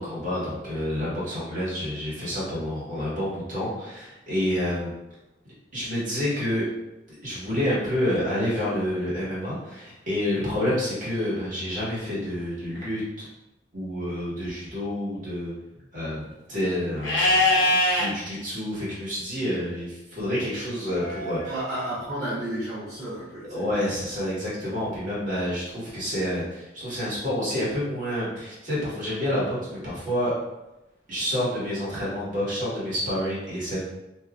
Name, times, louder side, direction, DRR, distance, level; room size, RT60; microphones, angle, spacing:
voice 1, 0.0-4.9 5.7-6.6 7.1-13.3 13.7-15.5 15.9-21.5 23.5-30.3 31.1-33.8, left 1 dB, 45° right, -8 dB, 1.5 m, -28 dB
Livestock farm animals working animals, 17.0-18.1 20.9-21.9, left 2 dB, 80° left, 0.8 m, -23 dB
voice 2, 21.5-23.6, right 1 dB, 20° right, -12 dB, 0.8 m, -32 dB
3.6 x 2.9 x 2.3 m, 0.96 s
head